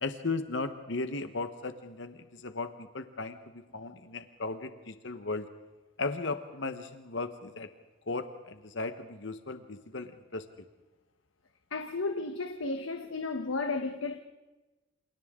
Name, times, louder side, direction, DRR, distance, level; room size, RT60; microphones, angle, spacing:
voice 1, 0.0-3.4 3.7-5.5 6.0-7.7 8.1-10.4, left 3 dB, 65° left, 1.2 m, -36 dB
voice 2, 11.7-14.2, left 3 dB, 85° left, 1.2 m, -33 dB
28.5 x 28.0 x 3.8 m
head